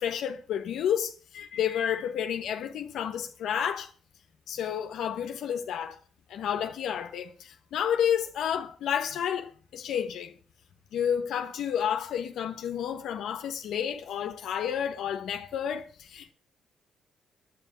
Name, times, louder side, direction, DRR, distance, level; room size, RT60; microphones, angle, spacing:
voice 1, 0.0-3.9 4.5-6.0 6.3-10.3 10.9-16.3, left 9 dB, 75° left, 1.2 m, -30 dB
10.0 x 8.6 x 8.0 m
cardioid pair, 90°, 0 cm